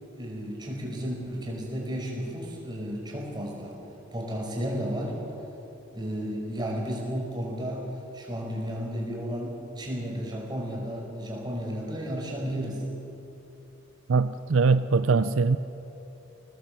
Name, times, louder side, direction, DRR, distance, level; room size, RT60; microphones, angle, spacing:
voice 1, 0.1-3.8 4.1-5.2 5.9-7.9 8.1-12.8, equal, 20° right, -1 dB, 4.9 m, -33 dB
voice 2, 14.1-15.6, right 4 dB, 75° right, 12 dB, 0.5 m, -22 dB
22.0 x 18.5 x 7.6 m, 3.0 s
head